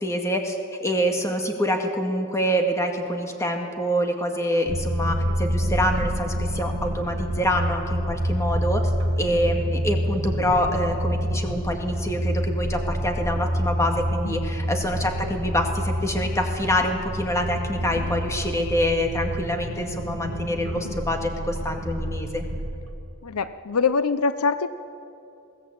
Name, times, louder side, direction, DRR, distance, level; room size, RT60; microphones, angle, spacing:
voice 1, 0.0-22.4, equal, 15° left, 3 dB, 2.1 m, -26 dB
sound 1, 4.7-22.9, equal, 70° right, 1.8 m, -28 dB
voice 2, 23.2-24.7, left 5 dB, 85° left, 13 dB, 0.7 m, -24 dB
22.0 x 16.5 x 8.7 m, 2.6 s
head